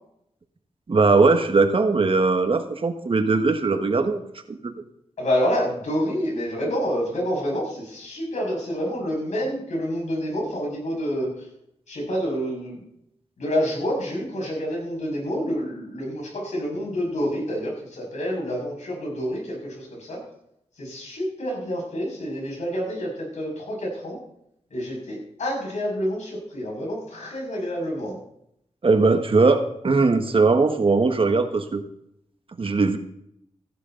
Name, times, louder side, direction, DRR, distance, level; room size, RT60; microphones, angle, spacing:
voice 1, 0.9-4.2 4.6-4.7 28.8-31.8 32.6-33.0, right 3 dB, 50° right, 7 dB, 1.5 m, -20 dB
voice 2, 5.2-11.5 11.9-12.8 13.4-20.2 20.8-24.2 24.7-28.2, equal, 80° left, -2 dB, 6.6 m, -28 dB
16.0 x 11.0 x 4.0 m, 0.75 s
cardioid pair, 75°, 12 cm